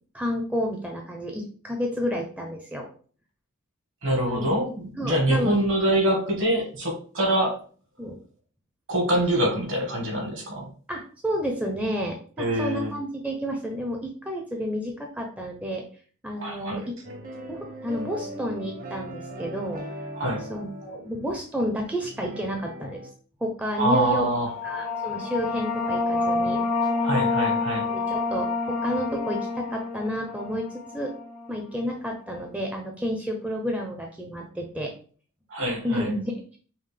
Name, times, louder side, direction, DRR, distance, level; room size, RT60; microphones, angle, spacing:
voice 1, 0.1-2.9 4.3-4.5 5.0-5.7 8.0-8.2 10.9-15.8 16.2-16.9 17.5-19.8 20.5-23.0 23.4-24.3 24.6-26.6 27.7-30.7 30.9-31.1 31.5-34.9 35.8-36.6, equal, 5° right, 1 dB, 0.5 m, -30 dB
voice 2, 4.0-7.6 8.9-10.7 12.4-12.9 16.4-16.9 20.1-20.5 23.8-24.5 27.0-27.9 35.5-36.1, right 1 dB, 60° right, 1 dB, 1.3 m, -25 dB
sound 1, 17.0-23.1, right 1 dB, 40° right, 0.7 m, -39 dB
sound 2, 24.3-31.6, left 3 dB, 85° left, 0.7 m, -28 dB
5.4 x 2.1 x 3.2 m, 0.42 s
head